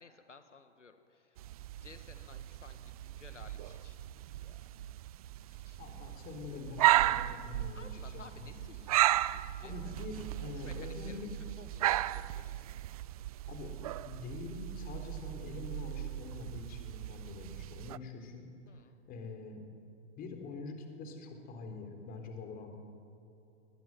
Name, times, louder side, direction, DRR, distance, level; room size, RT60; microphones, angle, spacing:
voice 1, 0.0-4.6 5.5-5.9 7.5-9.9 10.4-11.3 11.6-12.6 18.7-19.0, left 4 dB, 85° left, 8 dB, 1.7 m, -56 dB
sound 1, 1.4-18.0, right 14 dB, 30° right, 0.4 m, -35 dB
voice 2, 5.8-8.6 9.6-11.5 13.5-13.7 14.0-18.5 19.1-19.6 20.2-22.7, left 3 dB, 25° left, 4 dB, 3.9 m, -45 dB
21.5 x 20.0 x 9.4 m, 2.9 s
figure-of-eight pair, 115°, 36 cm